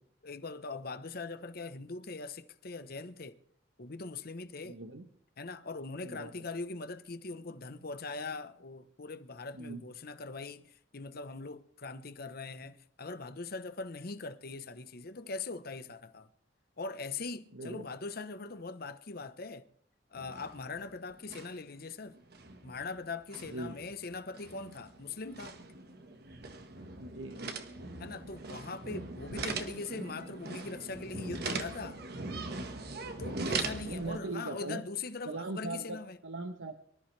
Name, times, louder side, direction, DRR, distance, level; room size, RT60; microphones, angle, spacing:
voice 1, 0.2-3.4 3.8-4.8 5.4-16.3 16.8-19.7 20.1-22.2 22.6-25.6 28.0-32.0 33.2-36.2, left 3 dB, 55° left, 1.0 m, -41 dB
voice 2, 4.6-5.1 6.0-6.3 9.5-9.8 17.5-17.9 23.5-23.8 27.0-27.8 32.6-32.7 33.9-34.8 35.2-36.0 36.2-36.7, right 2 dB, 85° right, 1.1 m, -40 dB
sound 1, 20.1-20.9 21.1-21.7 22.1-34.2, right 3 dB, 55° right, 1.6 m, -40 dB
24.5 x 13.5 x 3.3 m
head